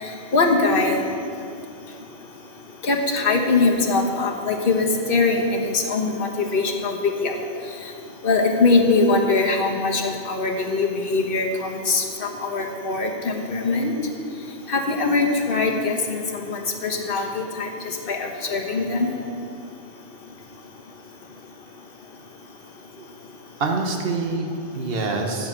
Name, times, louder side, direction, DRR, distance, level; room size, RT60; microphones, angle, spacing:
voice 1, 0.3-1.0 2.8-7.3 8.2-13.9 14.7-19.1, left 3 dB, 60° left, 2 dB, 1.4 m, -22 dB
voice 2, 23.6-25.5, right 3 dB, 65° right, 3 dB, 1.3 m, -26 dB
10.5 x 7.4 x 7.3 m, 2.5 s
omnidirectional pair, 1.1 m